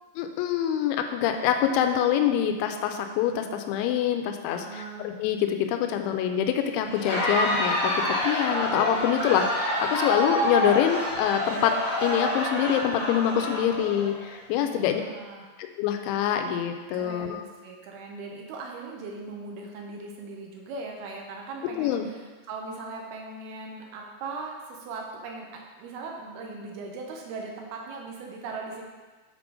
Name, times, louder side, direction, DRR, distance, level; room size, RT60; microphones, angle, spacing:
voice 1, 0.2-7.9 8.2-11.7 12.0-15.0 15.8-17.4 21.8-22.1, left 9 dB, 85° left, 5 dB, 2.9 m, -25 dB
voice 2, 4.5-5.1 14.6-15.5 16.9-25.5 25.8-28.8, right 3 dB, 75° right, 0 dB, 2.4 m, -39 dB
Crowd, 6.9-14.4, left 1 dB, 55° left, 3.2 m, -28 dB
7.8 x 3.8 x 4.9 m, 1.3 s
omnidirectional pair, 5.3 m